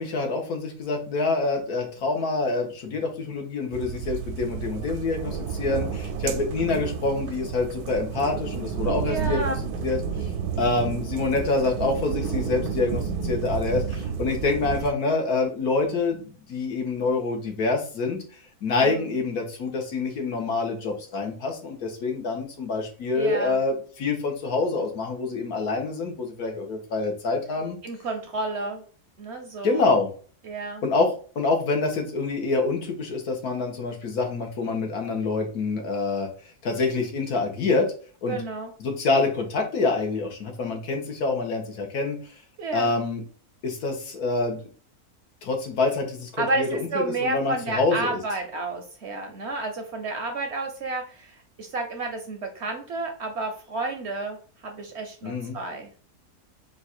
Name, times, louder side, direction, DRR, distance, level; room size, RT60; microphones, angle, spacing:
voice 1, 0.0-9.5 9.8-10.3 10.6-18.2 18.6-27.8 29.6-30.1 30.8-36.3 36.6-37.9 38.2-38.4 38.8-42.2 42.7-43.2 43.6-44.6 45.4-46.9 47.2-48.2 55.2-55.6, left 3 dB, 75° left, 3 dB, 1.5 m, -26 dB
sound 1, 3.7-14.9, right 6 dB, 85° right, 1.1 m, -31 dB
voice 2, 9.1-9.6 18.8-19.0 23.2-23.6 27.8-28.8 29.2-29.8 30.4-30.8 38.3-38.7 42.6-42.9 46.4-55.9, right 2 dB, 60° right, 4 dB, 0.8 m, -31 dB
3.9 x 2.4 x 4.2 m, 0.40 s
omnidirectional pair, 1.6 m